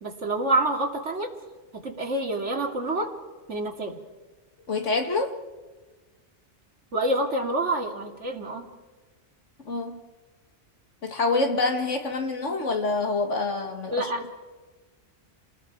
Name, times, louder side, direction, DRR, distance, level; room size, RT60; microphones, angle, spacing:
voice 1, 0.0-1.3 1.7-3.1 3.5-4.0 6.9-8.7 13.9-14.2, right 2 dB, 75° right, 2.7 m, -27 dB
voice 2, 4.7-5.4 9.7-10.0 11.0-14.3, left 3 dB, 80° left, 2.3 m, -26 dB
29.5 x 20.0 x 4.7 m
omnidirectional pair, 1.2 m